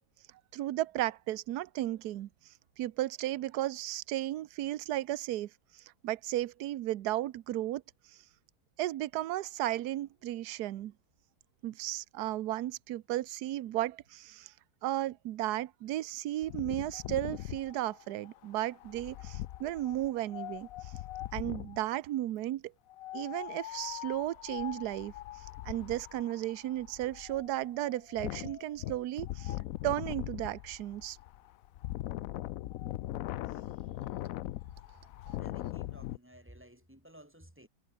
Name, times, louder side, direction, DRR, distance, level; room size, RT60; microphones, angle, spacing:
voice 1, 0.5-2.3 2.8-7.8 8.8-10.9 11.6-14.5 14.8-20.7 21.3-22.7 23.1-25.1 25.6-29.5 29.8-31.2 35.3-35.4, right 14 dB, 65° right, 1.2 m, -34 dB
Wind, 16.4-21.8 22.9-36.2, left 15 dB, 80° left, 0.7 m, -41 dB
voice 2, 35.4-37.7, equal, 5° right, 3.1 m, -55 dB
omnidirectional pair, 2.0 m